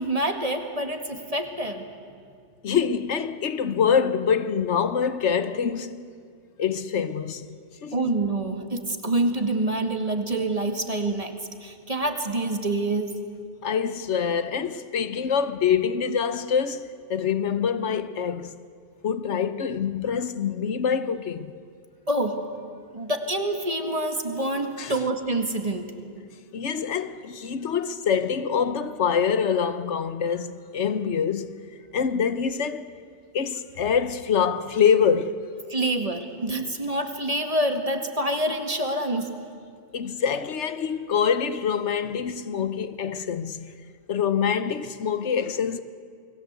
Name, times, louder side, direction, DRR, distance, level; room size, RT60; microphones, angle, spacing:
voice 1, 0.0-1.8 7.9-11.3 11.6-13.1 22.1-22.4 22.9-25.9 35.7-39.4, right 1 dB, 30° right, 2.1 m, -26 dB
voice 2, 2.6-6.0 6.6-7.5 7.8-8.2 13.6-18.5 19.0-21.5 24.8-25.0 26.5-31.5 31.9-32.9 33.3-35.4 39.9-43.7 44.1-45.8, left 7 dB, 75° left, 1.2 m, -25 dB
29.0 x 21.0 x 8.2 m
omnidirectional pair, 1.2 m